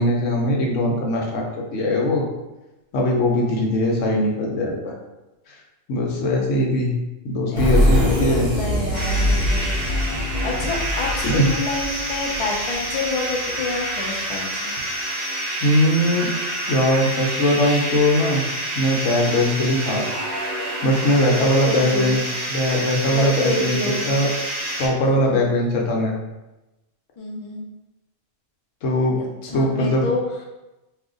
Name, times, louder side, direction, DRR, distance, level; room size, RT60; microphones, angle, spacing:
voice 1, 0.0-1.4 1.7-2.2 2.9-4.9 5.5-5.6 5.9-6.9 7.2-8.5 10.1-10.2 11.2-11.5 15.6-16.3 16.7-18.4 18.8-20.1 20.8-22.2 22.5-23.8 24.1-24.3 24.8-26.1 28.8-29.2 29.5-30.1, left 1 dB, 75° left, -1 dB, 1.0 m, -20 dB
voice 2, 3.4-3.7 7.5-10.1 10.4-14.8 21.3-22.1 23.1-24.1 25.3-25.4 27.2-27.6 29.1-29.2 29.4-30.2, left 2 dB, 55° left, -1 dB, 0.3 m, -28 dB
sound 1, 7.6-13.1, equal, 55° right, 0.9 m, -23 dB
sound 2, 8.9-24.9, right 1 dB, 35° right, 1.0 m, -28 dB
2.6 x 2.4 x 3.7 m, 1.0 s
omnidirectional pair, 1.3 m